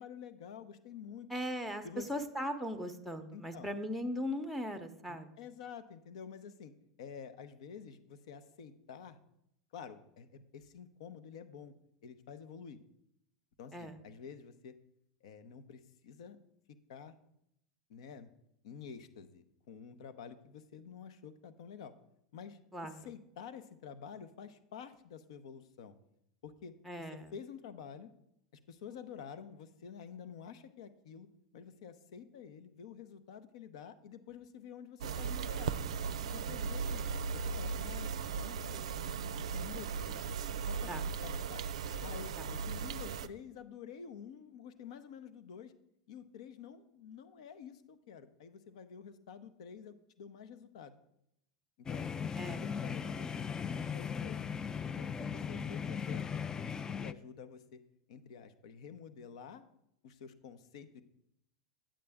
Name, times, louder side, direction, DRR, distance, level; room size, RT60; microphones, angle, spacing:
voice 1, 0.0-1.3 1.8-2.0 3.3-3.7 5.1-6.7 7.0-9.2 9.7-11.7 12.0-12.8 13.6-14.8 15.2-16.4 16.9-17.1 17.9-18.3 18.6-21.9 22.3-25.9 26.4-26.7 27.1-28.1 28.7-31.3 31.5-35.7 36.3-40.2 40.7-40.9 41.2-41.6 42.0-45.7 46.1-51.0 51.8-52.4 52.6-54.4 55.0-56.2 57.0-57.8 58.1-59.6 60.0-61.0, left 7 dB, 65° left, 11 dB, 0.8 m, -49 dB
voice 2, 1.3-5.3 13.7-14.0 22.7-23.0 26.8-27.3 40.9-41.0 42.4-42.5 52.4-52.7, equal, 5° left, 6 dB, 0.8 m, -38 dB
sound 1, 35.0-43.3, right 5 dB, 70° right, 0.4 m, -37 dB
sound 2, 51.9-57.1, left 6 dB, 20° left, 0.3 m, -38 dB
8.8 x 8.5 x 3.5 m, 0.77 s
hypercardioid pair, 95°, 3 cm